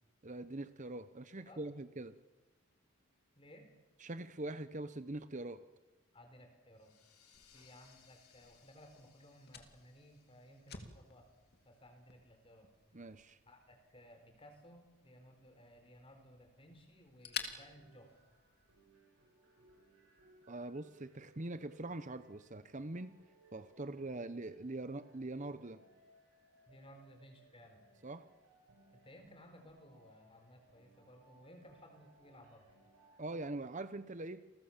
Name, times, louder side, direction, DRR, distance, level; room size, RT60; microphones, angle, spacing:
voice 1, 0.2-2.1 4.0-5.6 12.9-13.4 20.5-23.2 23.5-25.8 28.0-28.2 33.2-34.4, right 2 dB, 35° right, 12 dB, 0.9 m, -43 dB
voice 2, 3.3-3.7 6.1-6.9 7.5-11.3 11.6-12.7 13.5-18.1 26.7-27.8 28.9-32.7, equal, 25° left, 6 dB, 4.6 m, -59 dB
sound 1, 6.7-12.1, left 8 dB, 85° left, 4.4 m, -68 dB
Fire, 7.3-18.9, left 7 dB, 45° left, 2.8 m, -52 dB
sound 2, 17.7-33.7, right 2 dB, 75° right, 7.6 m, -67 dB
30.0 x 22.0 x 7.4 m, 1.2 s
head